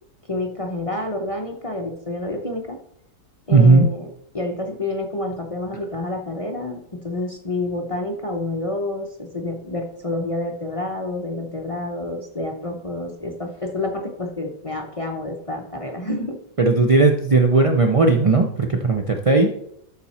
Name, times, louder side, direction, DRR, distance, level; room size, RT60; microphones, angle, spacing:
voice 1, 0.3-2.8 3.5-16.4, left 2 dB, 30° left, 2 dB, 0.6 m, -28 dB
voice 2, 3.5-3.9 16.6-19.5, right 3 dB, 50° right, 3 dB, 0.4 m, -16 dB
12.0 x 4.2 x 4.3 m, 0.71 s
omnidirectional pair, 1.7 m